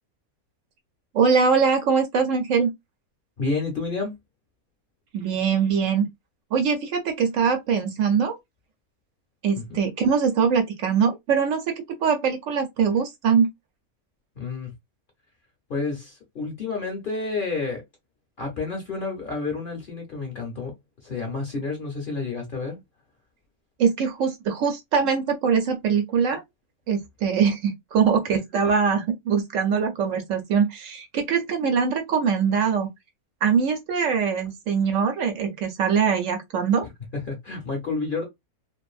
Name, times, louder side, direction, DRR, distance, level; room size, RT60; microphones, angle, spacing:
voice 1, 1.1-2.7 5.1-6.1 6.5-8.4 9.4-11.7 12.0-13.5 23.8-26.4 26.9-32.9 33.4-36.9, right 6 dB, 70° right, 0.9 m, -22 dB
voice 2, 3.4-4.2 9.6-9.8 14.4-14.7 15.7-17.8 18.4-20.8 21.0-22.8 37.1-38.2, left 3 dB, 45° left, 0.7 m, -30 dB
2.6 x 2.5 x 2.3 m
omnidirectional pair, 1.5 m